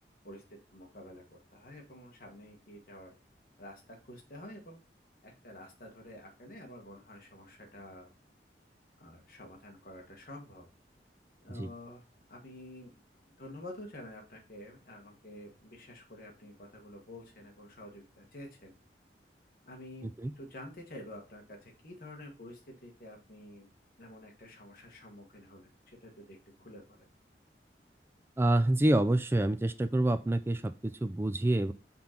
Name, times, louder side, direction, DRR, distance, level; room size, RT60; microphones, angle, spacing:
voice 1, 0.7-3.1 3.6-4.8 5.2-8.1 9.0-10.7 11.4-12.0 12.3-12.9 13.4-18.7 19.7-23.7 24.0-27.1, left 1 dB, 50° left, 0 dB, 1.5 m, -49 dB
voice 2, 28.4-31.7, right 1 dB, 15° right, 10 dB, 0.3 m, -27 dB
5.7 x 3.8 x 4.3 m, 0.33 s
head